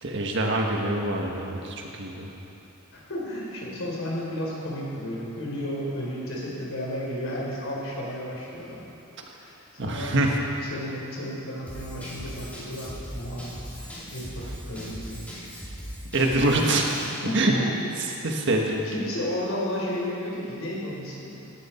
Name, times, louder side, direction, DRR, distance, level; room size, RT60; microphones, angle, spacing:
voice 1, 0.0-2.3 9.8-10.4 16.1-16.9 17.2-17.6 18.2-18.8, right 2 dB, 60° right, 1 dB, 1.5 m, -25 dB
voice 2, 2.9-8.8 9.4-9.6 9.8-10.4 10.7-15.6 17.2-17.7 18.4-21.5, equal, 70° left, -4 dB, 3.7 m, -33 dB
Drum kit / Drum, 11.7-17.2, equal, 5° left, 3.2 m, -39 dB
16.0 x 11.0 x 4.4 m, 2.8 s
head